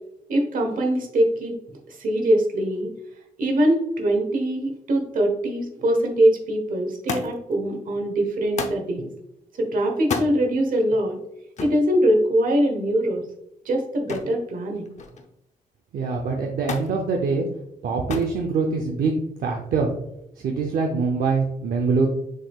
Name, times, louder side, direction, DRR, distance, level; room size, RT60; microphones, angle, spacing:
voice 1, 0.3-1.6 1.9-2.9 3.4-9.1 9.6-11.2 11.6-13.2 13.6-14.9, right 1 dB, 70° right, 3 dB, 1.1 m, -22 dB
Thump thud, 7.1-7.6 8.6-8.9 10.0-10.3 11.6-11.8 14.1-14.4 14.8-15.3 16.7-17.0 18.1-18.4 19.3-19.8 20.8-20.9, left 4 dB, 55° left, 0.6 m, -31 dB
voice 2, 15.9-17.5 17.8-19.1 19.4-19.9 20.4-22.1, right 4 dB, 85° right, 1 dB, 0.6 m, -23 dB
6.2 x 3.6 x 2.4 m, 0.80 s
wide cardioid pair, 125°, 15 cm